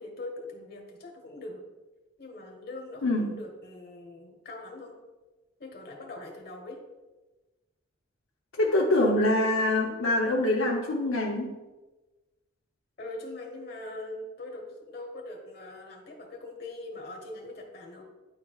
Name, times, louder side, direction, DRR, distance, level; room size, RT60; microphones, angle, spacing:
voice 1, 0.0-1.6 2.2-5.0 5.6-6.8 13.0-18.0, left 2 dB, 50° left, 2 dB, 1.2 m, -42 dB
voice 2, 3.0-3.4 8.6-11.5, left 1 dB, 80° left, -2 dB, 0.7 m, -25 dB
9.7 x 4.7 x 2.3 m, 1.2 s
head